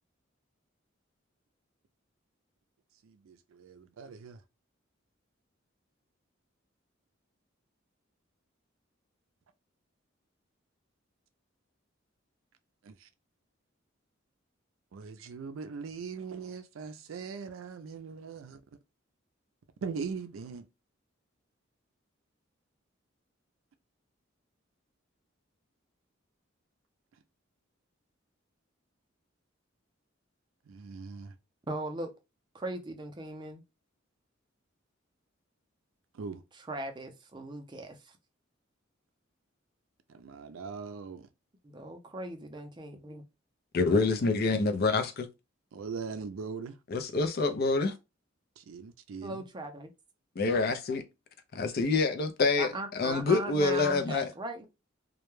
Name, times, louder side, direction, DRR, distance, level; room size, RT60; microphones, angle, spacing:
voice 1, 3.0-4.4 12.8-13.1 14.9-18.6 19.8-20.7 30.7-31.4 36.1-36.4 40.1-41.3 45.7-46.8 48.6-49.4, right 5 dB, 90° right, 0.4 m, -40 dB
voice 2, 31.7-32.1 32.5-33.6 36.7-38.1 41.6-43.2 49.2-49.9 52.6-54.7, right 1 dB, 20° right, 0.5 m, -38 dB
voice 3, 43.7-45.3 46.9-47.9 50.4-51.0 51.5-54.3, left 3 dB, 50° left, 0.5 m, -27 dB
2.2 x 2.1 x 3.0 m
head